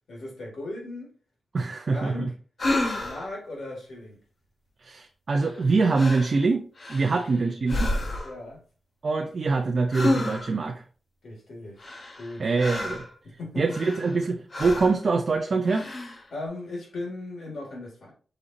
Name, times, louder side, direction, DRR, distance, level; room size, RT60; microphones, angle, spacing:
voice 1, 0.1-1.1 1.8-2.3 2.9-4.2 7.1-7.5 8.2-8.6 11.2-11.9 12.2-12.5 13.2-14.2 16.3-18.1, left 2 dB, 75° left, 2.0 m, -38 dB
voice 2, 1.5-2.3 4.8-6.6 6.9-7.9 9.0-10.8 12.4-13.0 13.6-15.9, right 4 dB, 40° right, 0.4 m, -24 dB
sound 1, 2.6-3.3 5.4-5.7 5.9-6.4 6.8-7.3 7.7-8.4 9.9-10.6 11.8-13.1 13.7-14.2 14.5-15.0 15.6-16.2, left 2 dB, 35° left, 0.8 m, -30 dB
5.0 x 4.0 x 2.6 m
wide cardioid pair, 170°, 0 cm